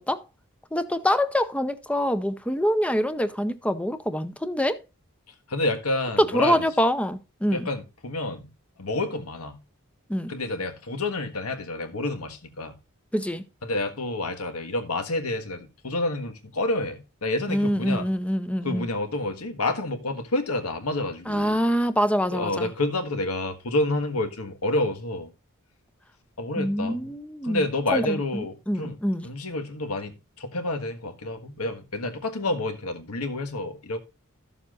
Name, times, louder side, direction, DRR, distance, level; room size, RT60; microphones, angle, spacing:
voice 1, 0.7-4.8 6.2-7.7 10.1-10.3 13.1-13.4 17.5-18.9 21.3-22.7 26.6-27.6 27.9-29.3, equal, 5° left, 0.6 m, -25 dB
voice 2, 5.5-6.7 7.5-8.5 8.8-9.6 10.3-12.8 13.6-18.1 18.6-21.6 22.3-25.3 26.4-27.1 27.4-29.0 29.2-34.0, left 2 dB, 90° left, 1.5 m, -29 dB
13.5 x 7.2 x 2.5 m
head